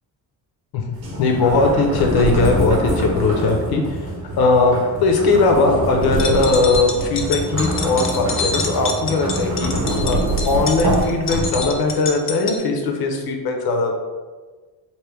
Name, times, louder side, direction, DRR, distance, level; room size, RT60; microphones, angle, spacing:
sound 1, 0.9-11.9, right 1 dB, 80° right, 1.2 m, -24 dB
voice 1, 1.2-4.1 4.4-9.7 10.0-14.0, left 3 dB, 60° left, 3 dB, 0.8 m, -19 dB
sound 2, 6.0-12.6, left 4 dB, 30° left, 0.4 m, -28 dB
3.1 x 2.8 x 3.3 m, 1.4 s
cardioid pair, 115°, 42 cm